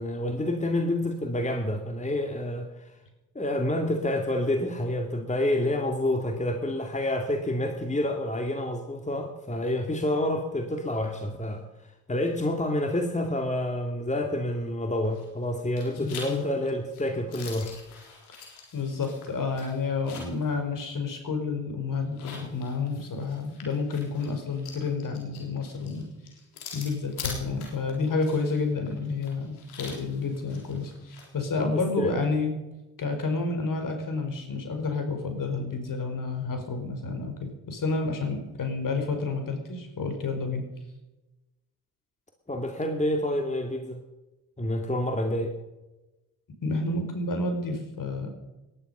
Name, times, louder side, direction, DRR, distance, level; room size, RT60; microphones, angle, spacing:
voice 1, 0.0-2.9 3.3-11.6 12.1-17.8 31.6-32.2 42.5-44.0 44.6-45.5, left 1 dB, 15° left, 4 dB, 2.4 m, -28 dB
sound 1, 15.0-15.4 15.8-20.5 20.8-20.9 22.0-31.3, left 5 dB, 90° left, 3.8 m, -43 dB
voice 2, 16.0-16.4 18.7-26.0 26.7-32.5 33.0-40.6 46.6-48.3, left 3 dB, 50° left, 5 dB, 4.8 m, -30 dB
19.0 x 12.0 x 5.6 m, 1.0 s
hypercardioid pair, 50°, 43 cm